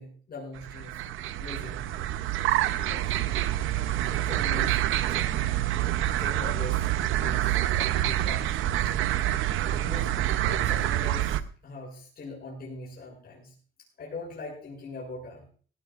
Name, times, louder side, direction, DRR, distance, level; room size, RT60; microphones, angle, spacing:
voice 1, 0.0-2.1 2.8-3.2 4.1-4.8 5.1-5.7 6.2-6.9 7.1-8.6 8.8-9.0 9.2-9.4 9.8-10.1 10.4-13.5 14.0-15.5, left 3 dB, 50° left, -3 dB, 7.0 m, -42 dB
sound 1, 0.6-11.4, right 13 dB, 85° right, 0.7 m, -27 dB
18.0 x 17.0 x 2.4 m, 0.43 s
cardioid pair, 90°, 20 cm